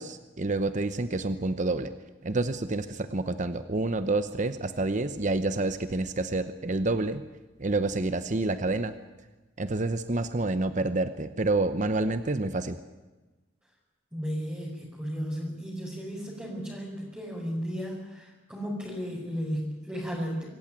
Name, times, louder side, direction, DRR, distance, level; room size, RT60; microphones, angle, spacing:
voice 1, 0.0-1.9 2.2-7.2 7.6-8.9 9.6-12.8, right 2 dB, 40° right, 11 dB, 0.9 m, -28 dB
voice 2, 14.1-20.4, equal, 10° right, -6 dB, 5.3 m, -34 dB
25.5 x 15.0 x 9.1 m, 1.2 s
head